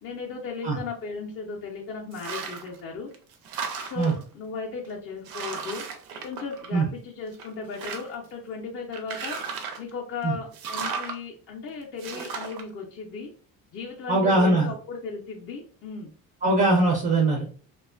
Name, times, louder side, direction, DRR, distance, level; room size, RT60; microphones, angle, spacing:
voice 1, 0.0-3.1 3.9-5.8 6.2-9.4 9.8-13.3 13.7-16.1, left 4 dB, 40° left, -2 dB, 0.4 m, -36 dB
sound 1, 2.1-2.8 3.1-4.2 4.8-4.9 5.3-7.0 7.3-8.3 8.9-9.9 10.5-11.2 12.0-12.6, right 5 dB, 75° right, 0.6 m, -35 dB
voice 2, 14.1-14.7 16.4-17.4, right 2 dB, 25° right, 1 dB, 0.4 m, -21 dB
2.4 x 2.2 x 2.3 m, 0.42 s
cardioid pair, 170°, 35 cm